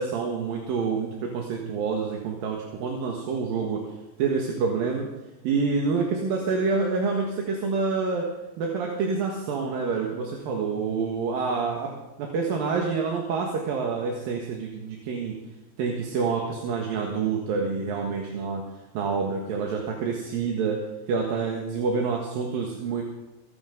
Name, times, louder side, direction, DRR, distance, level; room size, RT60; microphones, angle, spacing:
voice 1, 0.0-3.8 4.2-5.1 5.4-8.3 8.6-11.9 12.2-15.4 15.8-18.6 18.9-20.8 21.1-23.0, right 5 dB, 65° right, 0 dB, 3.0 m, -27 dB
23.0 x 9.4 x 5.3 m, 1.0 s
omnidirectional pair, 5.0 m